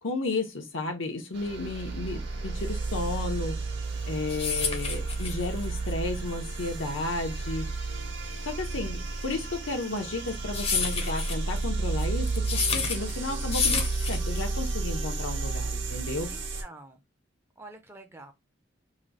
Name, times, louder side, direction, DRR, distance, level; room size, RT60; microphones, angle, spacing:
voice 1, 0.0-3.6 4.0-7.7 8.4-16.4, left 2 dB, 85° left, 1.0 m, -33 dB
sound 1, 1.3-16.6, right 3 dB, 65° right, 0.9 m, -32 dB
sound 2, 3.9-14.7, left 5 dB, 30° left, 0.6 m, -31 dB
voice 2, 8.7-9.1 16.3-17.0 17.6-18.3, right 2 dB, 15° right, 0.5 m, -48 dB
3.1 x 2.3 x 3.9 m
head